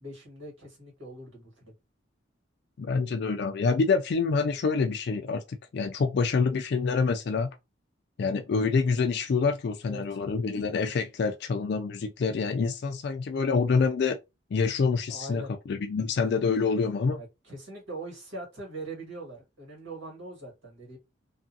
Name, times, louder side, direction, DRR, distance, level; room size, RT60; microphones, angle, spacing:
voice 1, 0.0-1.7 9.9-10.2 15.1-15.5 17.2-21.0, right 2 dB, 80° right, 1.7 m, -42 dB
voice 2, 2.8-7.5 8.2-14.2 14.5-17.2, left 4 dB, 55° left, 0.3 m, -26 dB
2.6 x 2.5 x 2.6 m
head